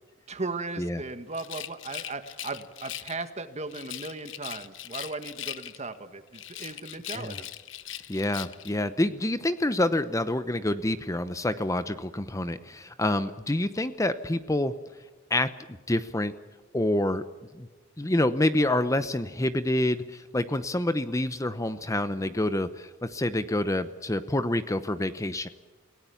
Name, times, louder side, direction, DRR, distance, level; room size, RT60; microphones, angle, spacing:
voice 1, 0.3-7.5, right 3 dB, 35° right, 9 dB, 1.8 m, -37 dB
Rattle, 1.3-3.2 3.7-6.0 6.3-8.8, left 12 dB, 70° left, 1.1 m, -40 dB
voice 2, 8.1-14.7 15.3-15.5 15.9-16.3 16.7-17.2 17.6-17.7 18.0-25.5, left 1 dB, 15° left, 12 dB, 0.8 m, -27 dB
29.5 x 18.0 x 7.2 m, 1.3 s
head